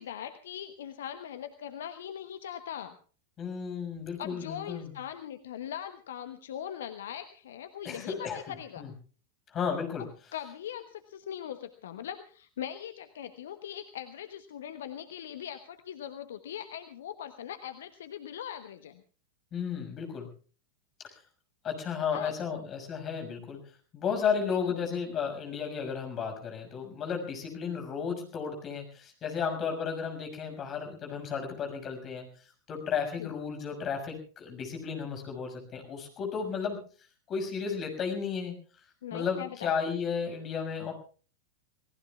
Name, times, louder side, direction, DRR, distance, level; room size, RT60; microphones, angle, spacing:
voice 1, 0.0-2.9 4.2-8.9 10.3-19.0 22.1-22.6 24.7-24.8 33.2-33.3 39.0-39.9, left 10 dB, 60° left, 10 dB, 1.0 m, -40 dB
voice 2, 3.4-5.0 7.8-8.4 8.8-8.9 9.5-10.1 19.5-20.3 21.0-21.2 21.6-23.6 23.9-32.3 32.7-36.8 37.3-38.5 39.1-40.9, left 6 dB, 30° left, 3 dB, 6.2 m, -33 dB
29.0 x 18.5 x 2.4 m, 0.40 s
figure-of-eight pair, 90°, 0 cm